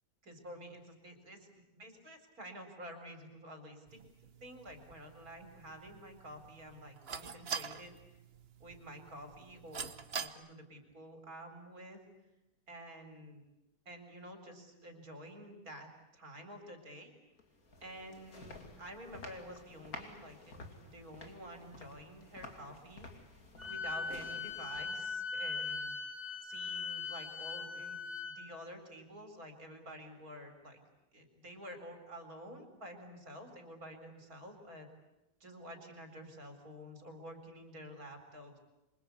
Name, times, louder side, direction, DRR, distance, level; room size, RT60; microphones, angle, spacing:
voice 1, 0.2-4.0 4.4-7.9 8.6-12.0 12.7-13.4 13.8-17.1 17.8-23.1 23.7-25.9 26.4-28.0 28.2-30.8 31.1-34.9 35.4-38.6, equal, 65° right, 5 dB, 4.8 m, -50 dB
sound 1, 3.9-10.3, right 6 dB, 45° right, 1.2 m, -46 dB
sound 2, 17.4-25.2, left 3 dB, 65° left, 3.1 m, -52 dB
Wind instrument woodwind instrument, 23.6-28.3, left 4 dB, 10° right, 2.9 m, -40 dB
27.0 x 24.0 x 8.4 m, 0.94 s
omnidirectional pair, 1.7 m